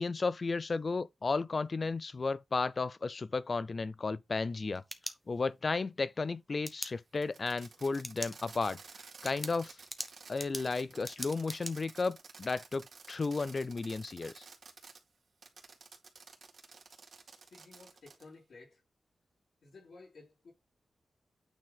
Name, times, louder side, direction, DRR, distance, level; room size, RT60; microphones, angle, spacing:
voice 1, 0.0-4.8 5.3-8.8 9.2-9.7 10.3-14.4, left 4 dB, 35° left, 0.5 m, -33 dB
sound 1, 4.5-5.7 6.6-6.9 7.9-8.4 8.7-8.8 9.2-11.7, equal, 5° left, 0.9 m, -42 dB
Fireworks, 7.2-15.0 15.4-18.3, right 5 dB, 60° right, 2.0 m, -53 dB
voice 2, 17.2-18.8 19.6-20.5, left 3 dB, 65° left, 3.9 m, -55 dB
9.0 x 3.8 x 4.1 m
wide cardioid pair, 135°, 0 cm